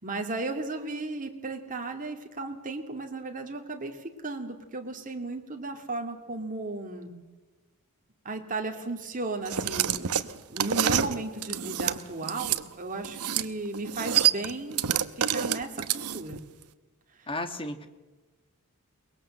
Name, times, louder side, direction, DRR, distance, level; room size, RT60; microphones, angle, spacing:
voice 1, 0.0-7.1 8.2-10.2 10.5-14.8 15.2-16.4, right 2 dB, 40° right, 3 dB, 2.6 m, -35 dB
sound 1, 9.4-12.6 13.0-13.5 13.7-16.4, right 9 dB, 90° right, 0.9 m, -27 dB
voice 2, 17.3-17.9, left 2 dB, 25° left, 8 dB, 1.7 m, -33 dB
23.0 x 21.0 x 7.7 m, 1.2 s
head